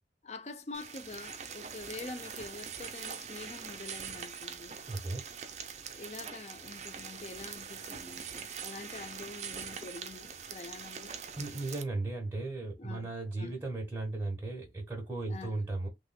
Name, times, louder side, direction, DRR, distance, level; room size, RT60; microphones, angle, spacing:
voice 1, 0.2-4.8 5.9-11.1 12.8-13.6 15.3-15.6, left 3 dB, 40° left, 0.5 m, -46 dB
sound 1, 0.7-11.8, right 7 dB, 40° right, 0.6 m, -43 dB
voice 2, 4.9-5.3 11.3-15.9, right 2 dB, 10° right, 1.5 m, -36 dB
3.5 x 3.2 x 2.2 m
head